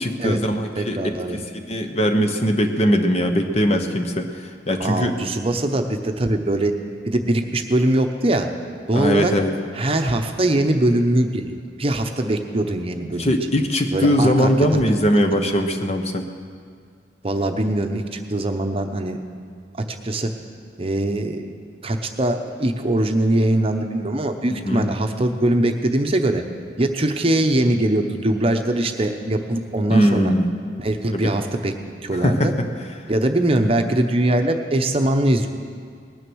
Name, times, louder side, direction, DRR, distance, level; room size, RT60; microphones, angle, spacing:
voice 1, 0.0-1.0 1.3-5.1 8.9-9.5 13.2-16.3 24.6-24.9 29.9-30.5 31.1-31.3 32.1-32.6, equal, 35° left, 5 dB, 1.0 m, -20 dB
voice 2, 0.8-1.4 4.8-6.7 7.0-8.5 8.9-9.3 9.7-13.3 13.9-14.7 17.2-19.2 19.8-20.3 20.8-21.5 21.8-26.4 26.8-30.3 30.8-31.7 32.0-32.5 33.1-35.5, right 1 dB, 30° right, 5 dB, 0.8 m, -22 dB
19.5 x 10.0 x 6.3 m, 2.1 s
head